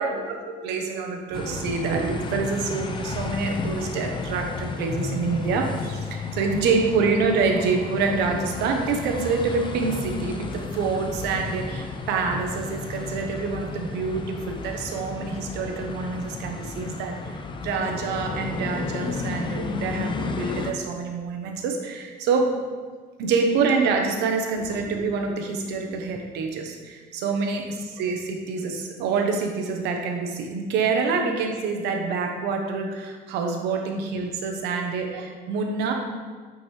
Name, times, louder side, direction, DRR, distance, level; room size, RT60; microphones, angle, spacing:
voice 1, 0.0-22.5 23.2-35.9, right 4 dB, 90° right, 3 dB, 1.1 m, -26 dB
sound 1, 1.3-20.7, left 4 dB, 30° left, 0.6 m, -33 dB
9.1 x 5.2 x 3.4 m, 1.5 s
cardioid pair, 110°, 17 cm